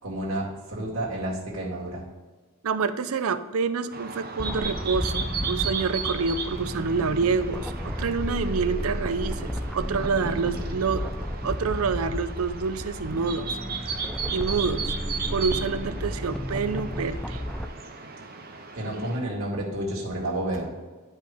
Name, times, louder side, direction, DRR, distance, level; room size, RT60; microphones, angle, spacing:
voice 1, 0.0-2.1 18.7-20.7, right 1 dB, 65° right, -4 dB, 2.1 m, -30 dB
voice 2, 2.6-11.0 11.4-14.9 15.3-17.4, right 5 dB, 85° right, 12 dB, 0.5 m, -27 dB
sound 1, 3.9-19.2, right 5 dB, 45° right, 0.8 m, -36 dB
sound 2, 4.4-17.7, equal, ahead, 0.4 m, -33 dB
11.0 x 5.3 x 3.5 m, 1.3 s
head